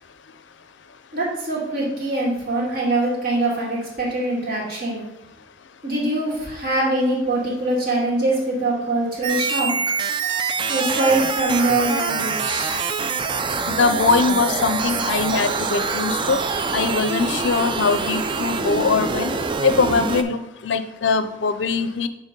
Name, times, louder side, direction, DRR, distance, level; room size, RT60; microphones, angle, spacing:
voice 1, 1.1-5.0 5.8-9.7 10.2-13.1, right 2 dB, 50° right, -5 dB, 2.4 m, -23 dB
sound 1, 9.2-20.2, right 4 dB, 25° right, 0.3 m, -25 dB
voice 2, 13.7-16.4 16.7-19.3 19.6-22.1, left 4 dB, 65° left, 11 dB, 0.5 m, -21 dB
7.3 x 3.5 x 5.3 m, 0.96 s
head